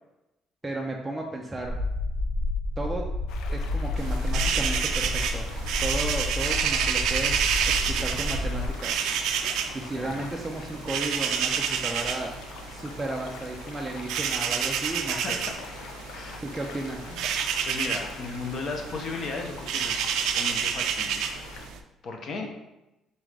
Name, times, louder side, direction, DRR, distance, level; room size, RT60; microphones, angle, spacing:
voice 1, 0.6-1.8 2.8-3.0 3.5-5.5 5.8-7.5 7.9-9.0 9.7-12.3 12.7-15.4 16.4-17.1, right 2 dB, 10° right, -1 dB, 0.4 m, -34 dB
sound 1, 1.6-8.7, left 2 dB, 30° left, 1.5 m, -30 dB
sound 2, 3.3-21.7, left 6 dB, 85° left, 0.4 m, -45 dB
sound 3, 4.0-21.8, right 7 dB, 80° right, 0.4 m, -30 dB
voice 2, 15.1-15.6 16.1-16.4 17.1-17.2 17.7-21.5 22.0-22.5, left 3 dB, 45° left, 3 dB, 0.7 m, -36 dB
4.1 x 3.6 x 3.3 m, 0.94 s
cardioid pair, 150°, 0 cm